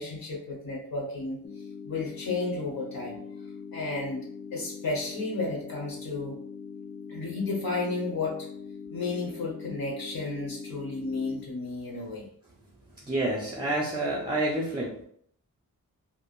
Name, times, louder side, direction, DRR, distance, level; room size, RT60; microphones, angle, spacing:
voice 1, 0.0-1.4 1.8-3.2 3.7-4.2 4.5-6.4 7.1-8.5 8.9-12.3, left 3 dB, 85° left, -2 dB, 1.1 m, -32 dB
sound 1, 1.4-11.4, left 6 dB, 40° left, 0.4 m, -42 dB
voice 2, 13.0-15.0, right 1 dB, 15° right, -1 dB, 0.5 m, -29 dB
3.4 x 2.1 x 2.4 m, 0.64 s
wide cardioid pair, 90°, 34 cm